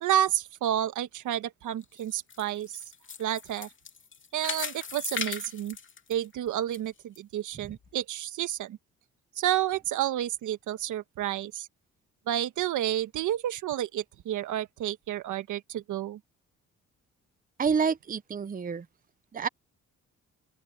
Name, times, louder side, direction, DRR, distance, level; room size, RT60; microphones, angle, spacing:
voice 1, 0.0-2.8 3.2-3.7 4.3-5.8 6.1-8.8 9.4-11.7 12.3-16.2, right 11 dB, 80° right, 1.5 m, -30 dB
sound 1, 1.8-6.8 7.2-7.3 7.8-7.9, left 6 dB, 40° left, 2.8 m, -38 dB
voice 2, 17.6-18.9 19.3-19.5, right 6 dB, 30° right, 0.8 m, -28 dB
open air
cardioid pair, 90°, 30 cm